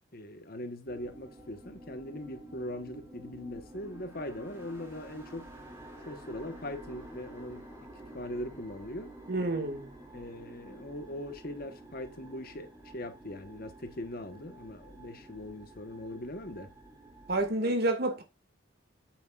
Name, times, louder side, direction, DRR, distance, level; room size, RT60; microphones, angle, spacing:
voice 1, 0.1-5.5 6.1-7.7 8.1-9.1 10.1-16.7, left 1 dB, 45° left, 1.3 m, -41 dB
sound 1, 0.9-17.5, right 1 dB, 15° right, 2.7 m, -50 dB
voice 2, 9.3-9.9 17.3-18.2, right 2 dB, 50° right, 2.1 m, -29 dB
8.8 x 8.1 x 2.5 m
head